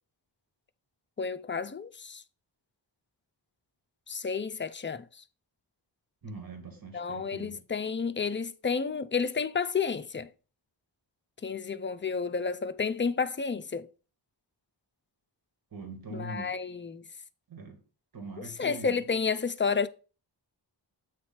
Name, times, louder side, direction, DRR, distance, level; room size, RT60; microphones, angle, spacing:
voice 1, 1.2-2.2 4.1-5.0 6.9-10.3 11.4-13.9 16.1-17.0 18.6-19.9, left 5 dB, 25° left, 0.5 m, -31 dB
voice 2, 6.2-7.6 15.7-16.6 17.5-17.8 18.1-19.0, right 3 dB, 50° right, 1.7 m, -42 dB
8.1 x 3.1 x 5.9 m
wide cardioid pair, 90°, 46 cm